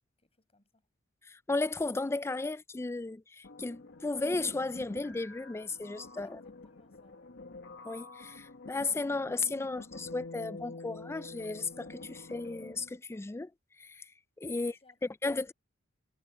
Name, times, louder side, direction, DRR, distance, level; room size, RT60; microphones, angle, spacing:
voice 1, 0.2-0.9 6.2-7.4 14.4-15.1 15.4-15.5, left 2 dB, 30° left, 7.8 m, -66 dB
voice 2, 1.3-6.4 7.8-13.5 13.8-14.0 14.4-14.7 15.2-15.5, left 3 dB, 10° left, 0.3 m, -34 dB
sound 1, 3.4-13.0, left 3 dB, 55° left, 1.4 m, -48 dB
head